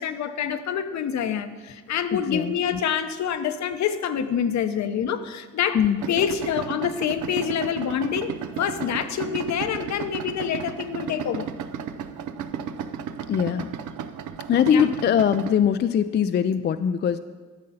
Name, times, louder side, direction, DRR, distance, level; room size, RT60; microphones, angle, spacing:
voice 1, 0.0-5.8 6.1-11.5 14.7-14.9, left 8 dB, 65° left, 9 dB, 0.8 m, -26 dB
voice 2, 2.1-2.8 5.7-6.0 13.3-13.7 14.5-17.2, left 8 dB, 35° left, 11 dB, 0.4 m, -22 dB
Idling, 6.0-15.6, right 7 dB, 75° right, 0.7 m, -34 dB
11.5 x 6.5 x 5.6 m, 1.4 s
cardioid pair, 90°, 30 cm